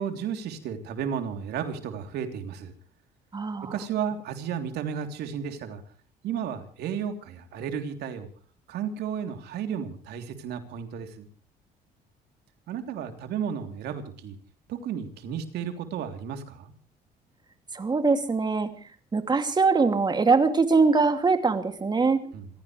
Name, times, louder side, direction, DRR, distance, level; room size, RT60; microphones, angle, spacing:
voice 1, 0.0-2.7 3.7-5.8 6.2-8.3 8.7-11.2 12.7-14.4 14.7-16.7 22.2-22.5, right 8 dB, 75° right, 6 dB, 3.3 m, -33 dB
voice 2, 3.3-3.7 17.7-18.7 19.1-22.2, right 4 dB, 25° right, 7 dB, 2.6 m, -22 dB
27.0 x 16.5 x 3.3 m, 0.41 s
cardioid pair, 110°, 17 cm